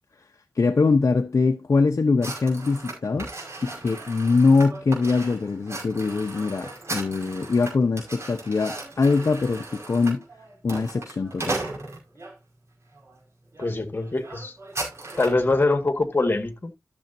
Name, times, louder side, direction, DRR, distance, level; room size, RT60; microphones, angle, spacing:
voice 1, 0.5-3.3 3.6-10.2 10.6-11.6, left 4 dB, 55° left, 0.9 m, -22 dB
sound 1, 2.2-12.3 13.0-13.2 13.5-13.7 14.0-15.5, right 2 dB, 45° right, 5.3 m, -36 dB
voice 2, 13.6-14.6 15.2-16.7, left 2 dB, 35° left, 1.8 m, -23 dB
13.5 x 7.1 x 2.7 m
wide cardioid pair, 100°, 6 cm